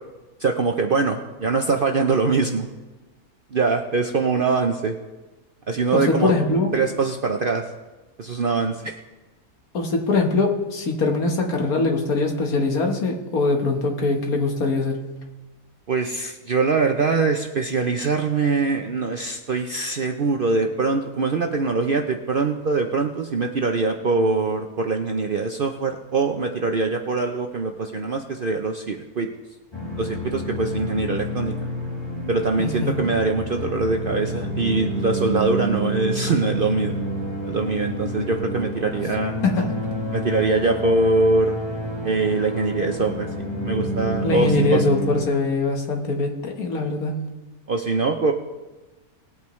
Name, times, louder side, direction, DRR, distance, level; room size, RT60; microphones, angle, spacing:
voice 1, 0.4-2.7 3.5-5.0 5.7-6.3 6.7-7.7 8.2-9.0 15.9-29.3 30.0-31.6 32.3-37.0 37.4-39.4 40.1-41.6 42.0-43.3 43.6-44.8 47.7-48.3, right 4 dB, 55° right, 4 dB, 0.6 m, -23 dB
voice 2, 5.9-6.7 9.7-15.0 32.6-33.1 39.4-39.7 44.2-47.1, left 3 dB, 75° left, 2 dB, 1.8 m, -22 dB
sound 1, 29.7-45.2, equal, 20° left, 1.6 m, -29 dB
19.5 x 8.6 x 3.1 m, 1.2 s
omnidirectional pair, 1.6 m